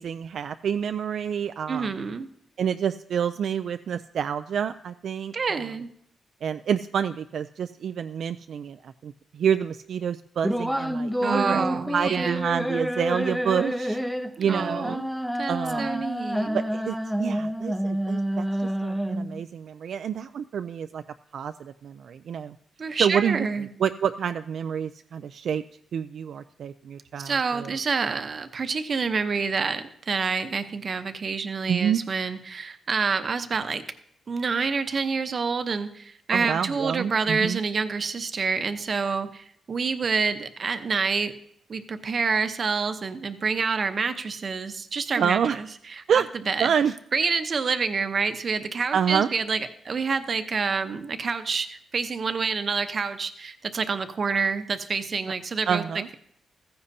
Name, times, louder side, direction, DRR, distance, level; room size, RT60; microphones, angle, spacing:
voice 1, 0.0-1.9 2.6-5.3 6.4-11.7 11.9-14.0 14.4-15.0 15.5-15.9 16.5-21.0 21.3-22.6 23.0-23.5 23.8-25.6 25.9-27.7 31.7-32.0 36.3-37.6 45.2-45.6 46.1-46.3 46.6-46.9 48.9-49.3 55.7-56.1, right 8 dB, 65° right, 10 dB, 0.3 m, -28 dB
voice 2, 1.7-2.3 5.3-5.9 11.2-12.4 14.4-15.1 15.4-16.6 22.8-23.7 27.2-33.8 34.3-41.3 41.7-45.7 45.9-46.7 47.1-55.8, right 5 dB, 40° right, 9 dB, 0.8 m, -27 dB
sound 1, 10.4-19.4, equal, ahead, 0.6 m, -28 dB
15.0 x 15.0 x 2.7 m, 0.71 s
wide cardioid pair, 135°, 0 cm